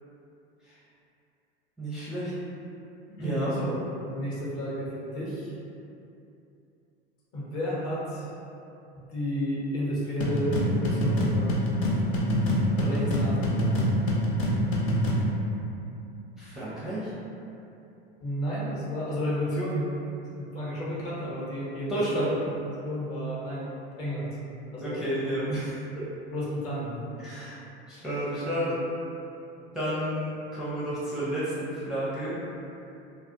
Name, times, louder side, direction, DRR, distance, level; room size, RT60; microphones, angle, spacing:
voice 1, 1.8-2.3 3.2-3.6 16.4-17.1 21.9-22.3 24.8-25.8 27.2-27.6 27.9-28.8 29.7-32.3, right 1 dB, ahead, -11 dB, 0.5 m, -31 dB
voice 2, 3.1-3.8 4.1-5.5 7.3-8.3 9.1-11.7 12.8-14.2 18.2-19.9 20.2-22.4 22.8-23.7 24.0-24.4 24.7-25.0 26.3-27.0, equal, 45° left, -7 dB, 0.9 m, -32 dB
sound 1, 10.2-15.3, equal, 65° left, 0.6 m, -25 dB
2.3 x 2.1 x 2.7 m, 2.7 s
hypercardioid pair, 85°, 32 cm